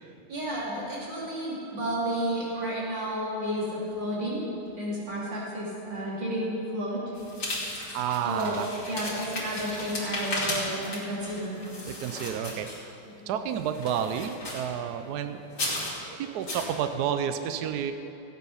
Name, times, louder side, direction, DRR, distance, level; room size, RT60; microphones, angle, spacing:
voice 1, 0.3-4.4 4.8-7.0 8.2-11.6 13.0-13.3, right 1 dB, 55° right, -6 dB, 3.7 m, -32 dB
sound 1, 7.1-13.1 13.5-14.8 15.5-16.0 16.5-16.7, left 1 dB, 50° left, 3.1 m, -35 dB
voice 2, 7.9-8.7 11.8-12.9 13.3-15.5 16.1-17.9, right 9 dB, 75° right, 8 dB, 0.9 m, -30 dB
15.5 x 9.1 x 5.6 m, 2.7 s
omnidirectional pair, 2.3 m